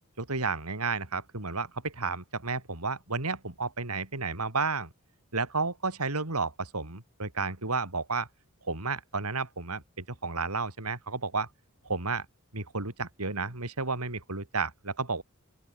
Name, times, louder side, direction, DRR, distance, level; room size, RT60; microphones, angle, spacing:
voice 1, 0.2-4.9 5.3-8.3 8.6-11.5 11.8-12.3 12.5-15.2, right 4 dB, 85° right, 3.9 m, -32 dB
open air
head